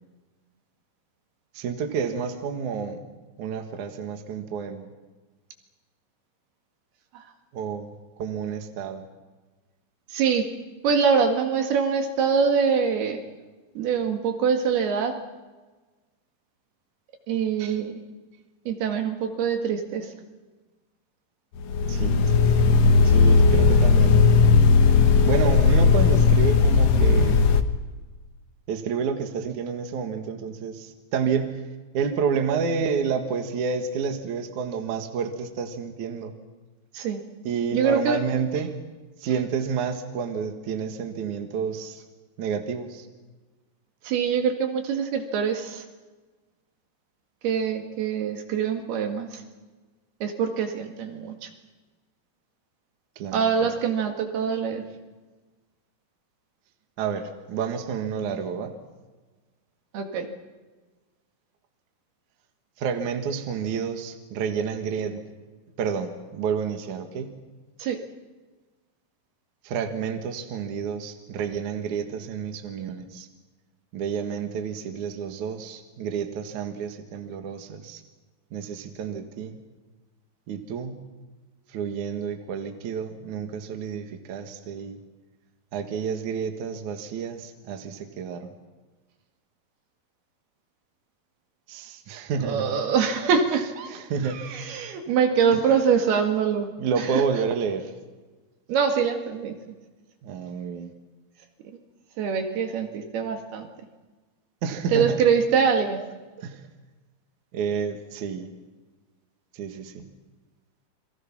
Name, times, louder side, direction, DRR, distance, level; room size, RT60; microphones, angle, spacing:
voice 1, 1.5-3.0 3.4-4.9 7.5-9.1 21.9-22.7 23.0-24.5 25.1-27.4 28.7-31.6 31.9-36.3 37.4-38.7 39.2-42.0 42.4-43.1 53.2-53.7 57.0-58.8 62.8-65.2 65.8-67.3 69.6-73.3 73.9-78.0 78.5-79.6 80.5-81.0 81.7-85.0 85.7-88.5 91.7-92.7 93.9-94.4 95.5-95.6 96.8-97.9 100.2-100.9 104.6-105.2 105.8-106.0 106.4-106.6 107.5-108.5 109.5-110.1, right 6 dB, 55° right, 6 dB, 2.7 m, -30 dB
voice 2, 10.1-10.5 10.8-13.2 13.8-15.2 17.3-17.9 18.7-20.1 36.9-37.2 37.7-38.2 44.0-45.9 47.4-49.4 50.2-51.5 53.3-54.8 59.9-60.3 67.8-68.0 92.4-93.9 94.2-96.7 98.7-99.5 102.2-103.7 104.9-106.0, right 6 dB, 70° right, 5 dB, 3.8 m, -24 dB
sound 1, 21.6-27.6, left 5 dB, 75° left, 1.5 m, -17 dB
29.5 x 23.0 x 6.0 m, 1.3 s
omnidirectional pair, 4.7 m